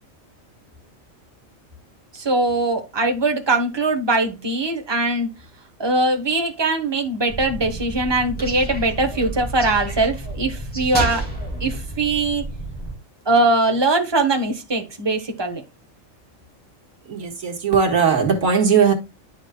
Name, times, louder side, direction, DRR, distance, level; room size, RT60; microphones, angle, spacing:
voice 1, 2.1-5.3 5.8-11.2 11.6-12.4 13.3-15.6, right 2 dB, 20° right, 1.1 m, -21 dB
sound 1, 7.3-13.0, right 1 dB, 5° left, 2.4 m, -30 dB
voice 2, 17.1-18.9, right 6 dB, 75° right, 1.9 m, -18 dB
11.0 x 4.9 x 2.2 m
omnidirectional pair, 1.4 m